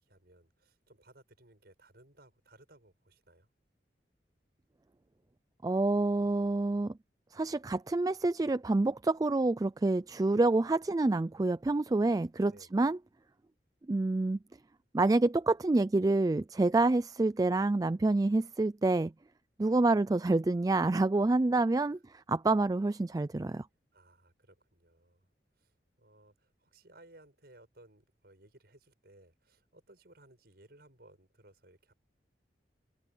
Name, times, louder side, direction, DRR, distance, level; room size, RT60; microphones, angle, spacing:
voice 1, 0.0-3.5 12.5-12.9 21.9-22.0 22.4-22.8 23.9-25.3 25.6-31.9, right 1 dB, 60° right, 7.4 m, -60 dB
voice 2, 5.6-6.9 7.3-13.0 13.9-14.4 14.9-19.1 19.6-23.7, right 2 dB, 20° right, 0.3 m, -27 dB
head